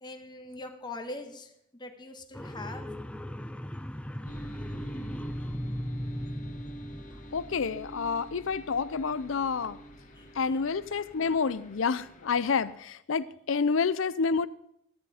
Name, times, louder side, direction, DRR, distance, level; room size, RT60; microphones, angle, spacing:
voice 1, 0.0-2.9 10.2-10.3, left 2 dB, 20° left, 5 dB, 1.3 m, -42 dB
sound 1, 2.3-7.6, equal, 5° left, 0.6 m, -38 dB
sound 2, 4.2-12.7, right 1 dB, 40° left, 1.5 m, -46 dB
voice 2, 7.3-9.8 10.4-14.5, left 5 dB, 80° left, 17 dB, 0.6 m, -29 dB
13.5 x 10.0 x 5.0 m, 0.76 s
head